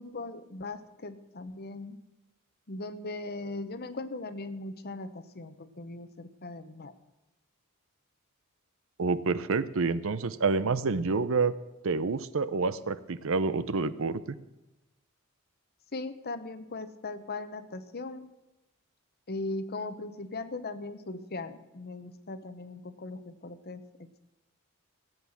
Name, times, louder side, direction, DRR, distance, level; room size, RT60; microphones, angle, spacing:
voice 1, 0.0-2.0 2.7-6.9 15.9-18.3 19.3-24.1, left 2 dB, 50° left, 11 dB, 1.0 m, -39 dB
voice 2, 9.0-11.5 11.8-14.2, right 4 dB, 70° right, 15 dB, 0.7 m, -28 dB
16.0 x 8.4 x 7.3 m, 1.0 s
head